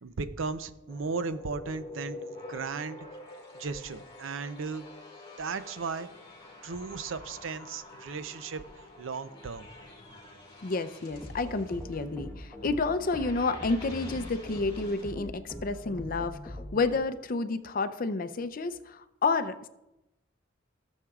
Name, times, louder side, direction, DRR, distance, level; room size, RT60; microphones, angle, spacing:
voice 1, 0.0-3.1 3.5-4.9 5.4-6.1 6.6-9.7, right 4 dB, 80° right, 12 dB, 0.6 m, -36 dB
sound 1, 0.9-15.1, left 2 dB, 30° left, 2.1 m, -48 dB
voice 2, 10.6-19.7, left 3 dB, 45° left, 11 dB, 0.5 m, -30 dB
sound 2, 11.1-17.0, equal, 10° left, 1.2 m, -42 dB
16.0 x 7.3 x 2.4 m, 0.92 s
head